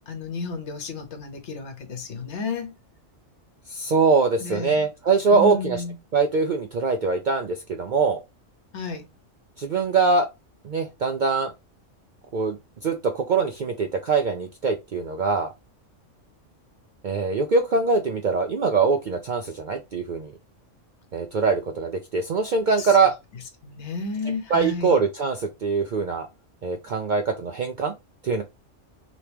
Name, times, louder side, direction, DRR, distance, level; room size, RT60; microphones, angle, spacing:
voice 1, 0.1-2.7 4.4-4.8 5.3-5.9 8.7-9.1 22.8-23.0 23.6-25.0, left 3 dB, 65° left, 1.1 m, -32 dB
voice 2, 3.7-5.8 6.1-8.2 9.6-10.3 10.6-11.5 12.3-12.6 12.8-15.5 17.0-20.3 21.1-23.1 24.5-26.3 26.6-27.9 28.2-28.4, right 4 dB, 60° right, 0.5 m, -23 dB
3.0 x 2.9 x 3.3 m
omnidirectional pair, 1.3 m